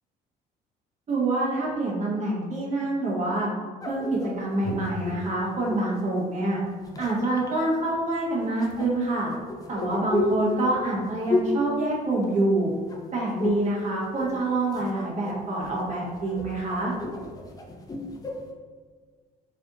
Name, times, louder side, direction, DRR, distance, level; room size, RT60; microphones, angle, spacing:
voice 1, 1.1-3.5 3.9-4.1 4.4-6.6 7.0-9.3 9.7-12.7 13.1-16.9, right 2 dB, 45° right, -4 dB, 1.3 m, -26 dB
sound 1, 3.8-6.0 6.7-7.5 8.6-12.6 12.9-13.8 14.0-14.9 15.3-18.5, left 2 dB, 20° left, 0.5 m, -32 dB
3.3 x 2.6 x 3.8 m, 1.5 s
cardioid pair, 110°, 17 cm